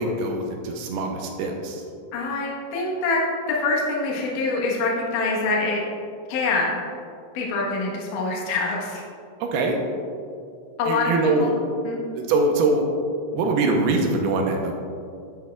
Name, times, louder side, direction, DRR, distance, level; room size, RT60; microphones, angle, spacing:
voice 1, 0.0-1.8 9.4-9.8 10.9-11.5 12.2-12.8 13.3-14.7, right 3 dB, 80° right, 2 dB, 2.6 m, -23 dB
voice 2, 2.1-5.8 6.3-6.7 7.3-9.0 10.8-11.1 11.4-11.5 11.8-12.0, left 3 dB, 65° left, -3 dB, 2.5 m, -25 dB
11.0 x 8.4 x 2.3 m, 2.4 s
omnidirectional pair, 4.6 m